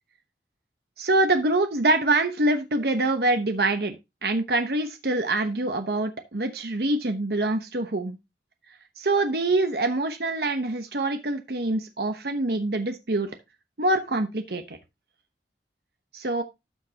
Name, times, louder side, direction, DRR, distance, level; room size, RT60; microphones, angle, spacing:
voice 1, 1.0-4.0 4.2-8.2 9.0-13.3 13.8-14.8 16.1-16.4, right 2 dB, 60° right, 7 dB, 1.0 m, -25 dB
12.5 x 6.6 x 2.8 m, 0.23 s
head